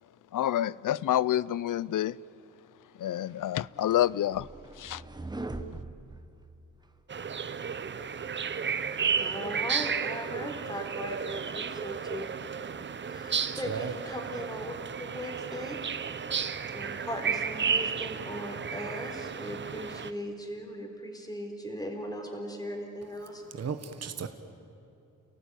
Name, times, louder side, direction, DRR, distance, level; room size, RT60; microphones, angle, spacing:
voice 1, 0.3-2.2 3.0-4.5 4.8-5.0, left 12 dB, 75° left, 0.5 m, -28 dB
sound 1, 3.3-7.0, right 2 dB, 15° right, 1.0 m, -42 dB
sound 2, 7.1-20.1, right 6 dB, 35° right, 0.7 m, -33 dB
voice 2, 9.1-15.8 16.7-23.4, equal, 10° left, 3.7 m, -39 dB
voice 3, 13.7-14.0 23.5-24.3, right 6 dB, 50° right, 1.3 m, -35 dB
30.0 x 17.5 x 9.1 m
wide cardioid pair, 160°, 32 cm